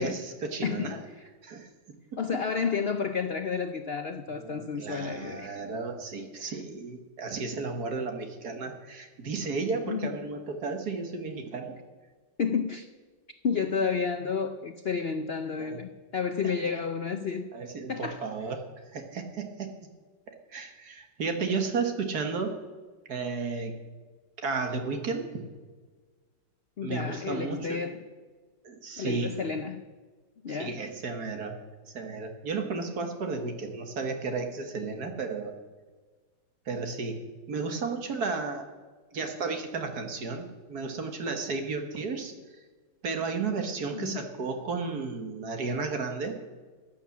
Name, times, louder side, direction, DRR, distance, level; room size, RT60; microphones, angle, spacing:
voice 1, 0.0-1.0 1.4-1.7 2.3-2.4 4.4-11.8 15.6-15.8 16.4-16.5 17.5-18.6 18.9-19.7 20.3-22.6 23.1-23.7 24.4-25.3 26.8-27.8 28.6-29.3 30.5-31.6 31.9-35.5 36.7-37.2 37.5-38.7 39.1-42.3 43.0-46.4, right 4 dB, 55° right, 5 dB, 2.0 m, -33 dB
voice 2, 0.6-1.2 2.2-5.6 6.4-6.6 9.8-10.2 12.4-12.9 13.4-17.5 17.9-18.3 26.8-28.0 29.0-29.8 30.4-30.8 43.9-44.2, left 6 dB, 75° left, 8 dB, 0.5 m, -31 dB
15.0 x 9.1 x 7.2 m, 1.4 s
omnidirectional pair, 2.0 m